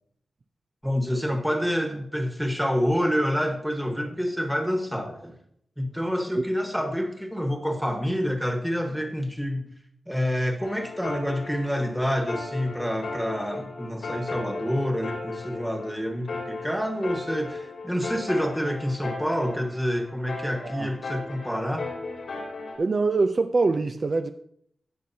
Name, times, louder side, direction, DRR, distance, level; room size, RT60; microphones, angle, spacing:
voice 1, 0.8-5.4 5.8-9.7 10.1-21.9, equal, ahead, 4 dB, 1.3 m, -27 dB
sound 1, 10.6-22.8, left 3 dB, 85° left, 3.0 m, -36 dB
voice 2, 22.8-24.3, right 3 dB, 40° right, 8 dB, 0.4 m, -24 dB
16.5 x 6.2 x 2.8 m, 0.68 s
wide cardioid pair, 130°, 0 cm